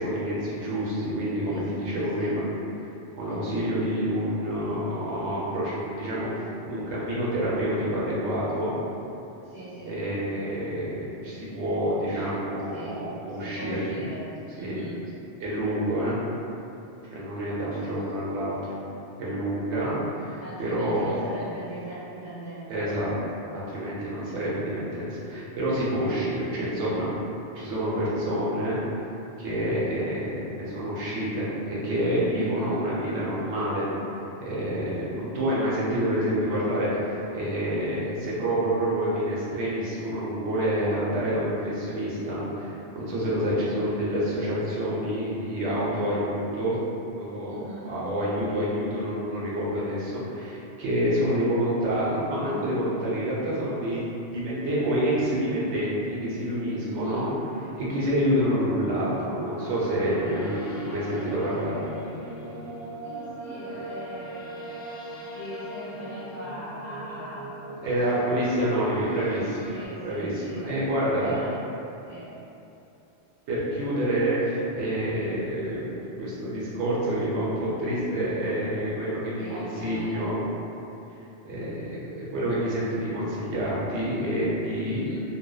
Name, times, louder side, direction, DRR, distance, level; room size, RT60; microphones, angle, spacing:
voice 1, 0.0-2.4 3.1-6.3 6.7-8.7 9.9-14.0 14.6-14.8 15.4-16.2 17.1-18.6 19.2-21.2 22.7-23.1 23.5-27.0 27.5-28.8 29.4-33.9 34.4-46.8 47.1-47.6 47.8-57.3 57.8-61.8 67.8-69.7 70.0-71.3 73.5-80.4 81.4-85.0, equal, 75° right, -8 dB, 0.9 m, -28 dB
voice 2, 1.4-2.4 3.3-3.6 9.4-10.0 12.1-12.3 12.7-15.0 17.3-18.2 20.4-22.9 32.4-32.8 47.5-47.9 56.8-57.3 63.0-64.8 65.2-67.5 67.9-68.4 69.7-70.7 71.2-71.6 72.1-72.4 78.1-78.3 79.4-80.3 84.9-85.2, right 1 dB, 20° left, -13 dB, 0.5 m, -41 dB
sound 1, 57.0-69.9, right 1 dB, 65° left, 0.7 m, -39 dB
2.6 x 2.1 x 2.2 m, 2.8 s
omnidirectional pair, 1.2 m